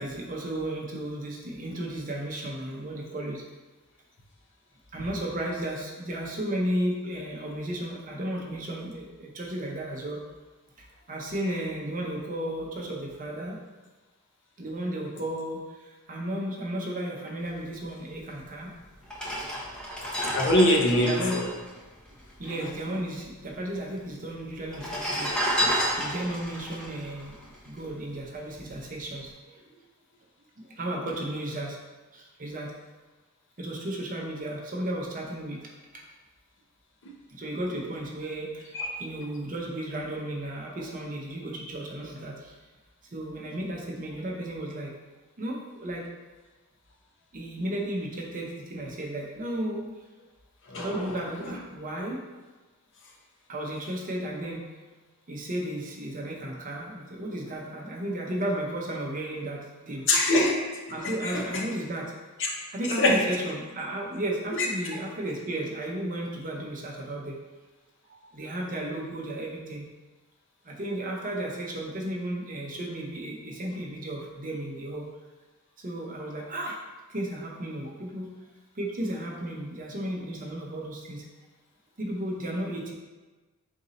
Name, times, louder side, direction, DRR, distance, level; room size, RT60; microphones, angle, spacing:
voice 1, 0.0-3.4 4.9-10.2 10.8-13.6 14.6-18.7 20.9-21.4 22.4-27.3 27.6-29.6 30.6-31.8 32.1-32.7 33.6-35.6 35.9-36.0 37.3-42.6 43.1-44.9 45.4-46.0 47.3-49.9 50.7-52.2 53.5-54.6 55.3-60.0 60.9-62.1 62.7-67.4 68.1-69.8 70.6-75.0 75.8-76.8 77.1-78.3 78.7-81.2 82.0-82.9, right 1 dB, 35° right, -1 dB, 0.7 m, -34 dB
sound 1, 18.4-18.5 19.0-22.7 23.0-23.1 23.3-24.0 24.6-28.1 28.6-28.8, equal, 5° left, 0.6 m, -31 dB
voice 2, 20.2-21.4 22.6-22.7 38.7-38.9 50.7-51.1 60.1-60.6 61.0-61.6 62.4-62.5 62.9-63.2 64.5-64.7, left 1 dB, 55° left, -1 dB, 0.7 m, -24 dB
3.9 x 2.6 x 4.0 m, 1.2 s
head